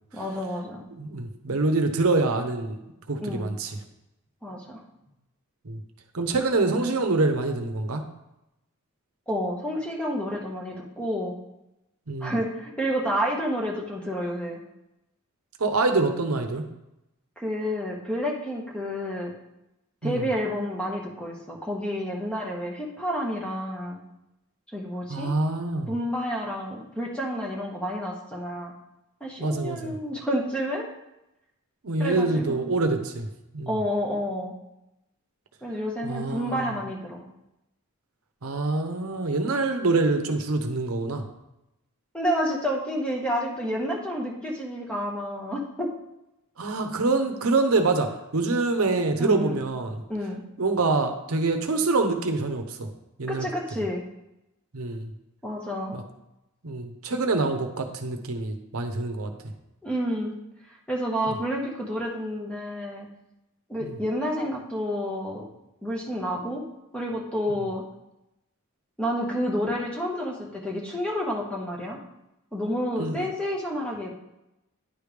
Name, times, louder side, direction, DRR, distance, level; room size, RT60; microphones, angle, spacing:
voice 1, 0.1-0.8 3.2-3.5 4.4-4.8 9.3-11.4 12.2-14.6 17.4-19.3 20.0-24.0 24.7-25.3 25.9-28.7 29.2-30.9 32.0-32.6 33.7-34.5 35.6-37.2 42.1-45.9 49.2-49.6 50.1-50.4 53.3-54.0 55.4-56.0 59.8-60.3 60.9-63.1 63.7-65.5 65.8-66.6 66.9-67.8 69.0-72.0 72.5-74.1, equal, 5° left, -1 dB, 1.0 m, -29 dB
voice 2, 0.9-2.8 3.1-3.8 5.6-5.8 6.1-8.0 12.1-12.3 15.6-16.6 20.0-20.3 25.1-25.9 29.4-29.9 31.8-33.3 33.5-33.7 36.0-36.7 38.4-41.2 46.6-50.0 50.6-52.9 53.2-53.5 54.7-55.1 55.9-56.0 56.6-59.3 61.3-61.4 63.8-63.9 73.0-73.3, right 3 dB, 70° right, 5 dB, 0.8 m, -25 dB
10.0 x 3.4 x 5.0 m, 0.90 s
head